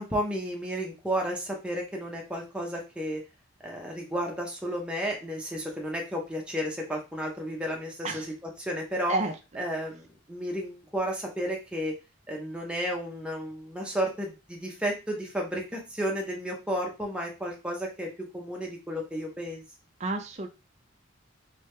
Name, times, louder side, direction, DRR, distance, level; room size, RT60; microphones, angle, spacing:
voice 1, 0.0-3.2 3.6-8.3 8.6-9.2 9.6-12.0 12.3-19.6, equal, 5° right, -1 dB, 0.8 m, -32 dB
voice 2, 20.0-20.5, right 2 dB, 35° right, 5 dB, 0.5 m, -30 dB
3.3 x 3.2 x 3.2 m, 0.29 s
head